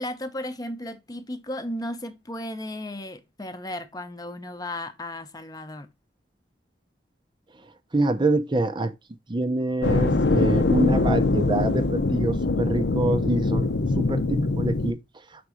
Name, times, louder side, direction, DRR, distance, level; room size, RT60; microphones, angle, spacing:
voice 1, 0.0-5.9, left 1 dB, 20° left, 0.7 m, -35 dB
voice 2, 7.9-8.9 9.3-13.7 14.0-15.0, right 2 dB, 25° right, 0.6 m, -25 dB
sound 1, 9.8-14.9, left 3 dB, 70° left, 0.7 m, -23 dB
6.0 x 4.0 x 4.8 m
head